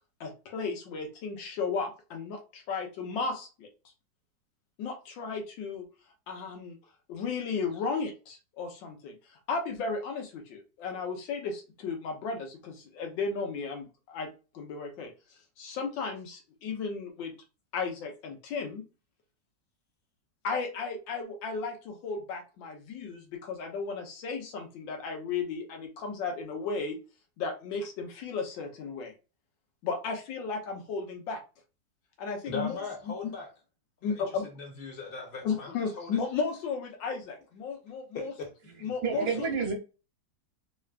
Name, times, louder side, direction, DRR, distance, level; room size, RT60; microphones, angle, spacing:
voice 1, 0.2-3.7 4.8-5.9 6.3-6.8 7.1-14.3 14.5-15.1 15.6-17.3 17.7-18.8 20.4-27.0 27.4-29.1 29.8-31.4 32.2-32.8 33.2-33.3 34.0-34.5 35.4-38.3 38.8-39.5, left 4 dB, 90° left, 1.5 m, -34 dB
voice 2, 32.4-33.5 34.0-34.2 34.5-36.2 38.1-38.5, left 4 dB, 40° left, 1.0 m, -39 dB
voice 3, 38.7-39.7, right 5 dB, 55° right, 1.4 m, -30 dB
3.6 x 3.3 x 2.4 m
omnidirectional pair, 2.0 m